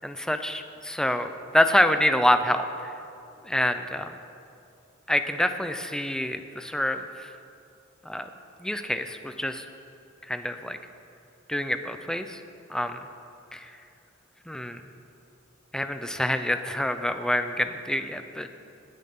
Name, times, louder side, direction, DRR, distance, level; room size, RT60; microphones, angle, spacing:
voice 1, 0.0-2.9 3.4-4.1 5.1-7.3 8.1-8.3 8.6-9.6 10.3-10.8 11.5-12.4 12.7-13.0 13.5-13.7 14.5-14.8 15.7-18.5, left 1 dB, 5° left, 8 dB, 0.5 m, -26 dB
20.0 x 9.6 x 3.8 m, 2.6 s
head